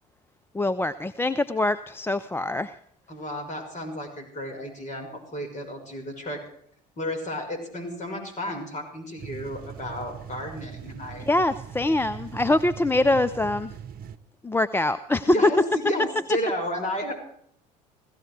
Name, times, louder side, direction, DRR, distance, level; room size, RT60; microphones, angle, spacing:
voice 1, 0.5-2.7 11.2-13.7 14.4-15.5, left 2 dB, 10° left, 12 dB, 0.6 m, -23 dB
voice 2, 3.1-6.4 7.0-11.3 15.3-17.1, left 1 dB, 35° left, 3 dB, 6.1 m, -32 dB
sound 1, 9.2-14.2, right 7 dB, 45° right, 1.2 m, -40 dB
17.0 x 15.0 x 4.8 m, 0.66 s
hypercardioid pair, 65°, 21 cm